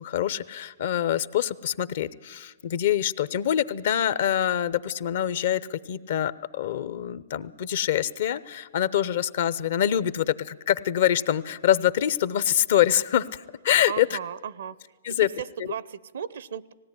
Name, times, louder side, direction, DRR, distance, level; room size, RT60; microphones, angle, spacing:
voice 1, 0.0-14.2 15.0-15.3 15.6-15.7, left 10 dB, 65° left, 16 dB, 0.7 m, -25 dB
voice 2, 13.9-14.8 15.2-16.7, right 8 dB, 75° right, 20 dB, 0.6 m, -35 dB
18.5 x 16.5 x 9.8 m, 1.4 s
hypercardioid pair, 130°, 0 cm